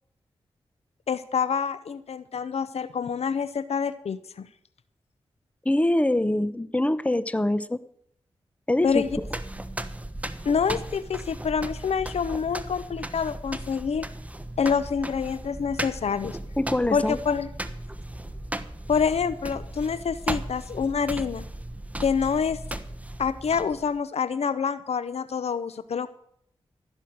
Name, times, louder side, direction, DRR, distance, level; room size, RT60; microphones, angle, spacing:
voice 1, 1.1-4.5 8.8-9.1 10.4-14.1 14.6-16.4 16.9-17.5 18.9-21.5 22.0-22.6 23.2-26.1, left 6 dB, 75° left, 15 dB, 0.8 m, -27 dB
voice 2, 5.6-7.8 8.7-9.0 16.6-17.2, left 1 dB, 10° left, 15 dB, 0.9 m, -24 dB
sound 1, 8.8-24.0, right 1 dB, 15° right, 1.2 m, -36 dB
14.5 x 6.4 x 9.3 m, 0.69 s
cardioid pair, 45°, 11 cm